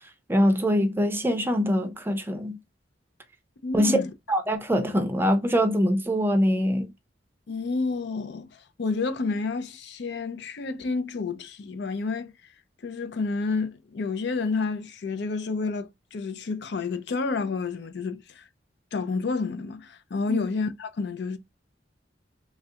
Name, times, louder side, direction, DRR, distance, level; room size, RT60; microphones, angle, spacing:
voice 1, 0.3-2.6 3.7-4.0 4.3-6.9 20.3-20.5, equal, 10° right, 0.5 m, -23 dB
voice 2, 3.6-4.1 7.5-12.3 12.8-18.4 18.9-21.4, left 4 dB, 65° left, 0.5 m, -30 dB
3.2 x 2.4 x 2.7 m
head